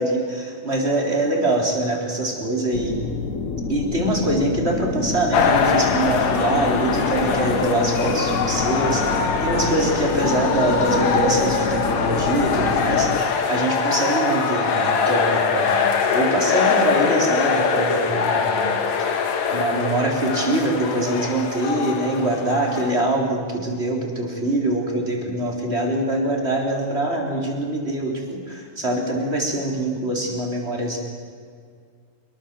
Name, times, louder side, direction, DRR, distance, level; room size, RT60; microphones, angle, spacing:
voice 1, 0.0-3.0 3.7-15.8 16.1-18.7 19.5-31.0, right 1 dB, 20° right, 0 dB, 4.2 m, -24 dB
sound 1, 2.7-13.2, left 5 dB, 50° left, 1.0 m, -27 dB
sound 2, 5.3-22.9, left 5 dB, 70° left, 3.1 m, -23 dB
25.0 x 22.5 x 7.6 m, 2.1 s
omnidirectional pair, 3.3 m